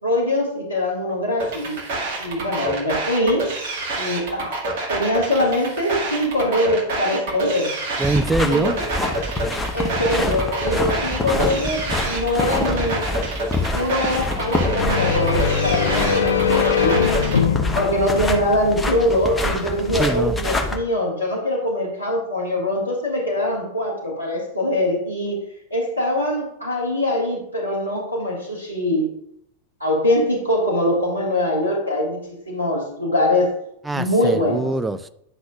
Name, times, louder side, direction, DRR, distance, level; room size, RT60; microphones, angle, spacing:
voice 1, 0.0-1.8 2.2-3.6 4.0-4.6 4.9-7.7 8.4-8.8 9.7-13.2 13.7-17.0 17.7-25.4 25.7-29.1 29.8-32.2 32.5-33.5 33.9-34.7, left 1 dB, 85° right, 1.7 m, -23 dB
sound 1, 1.4-17.4, right 2 dB, 55° right, 1.9 m, -27 dB
sound 2, 8.0-20.8, left 2 dB, 10° left, 1.0 m, -26 dB
voice 2, 8.0-8.8 20.0-20.3 33.8-35.1, right 3 dB, 10° right, 0.5 m, -23 dB
sound 3, 14.3-19.0, left 7 dB, 70° left, 0.5 m, -22 dB
11.0 x 6.1 x 2.4 m
figure-of-eight pair, 90°, 0 cm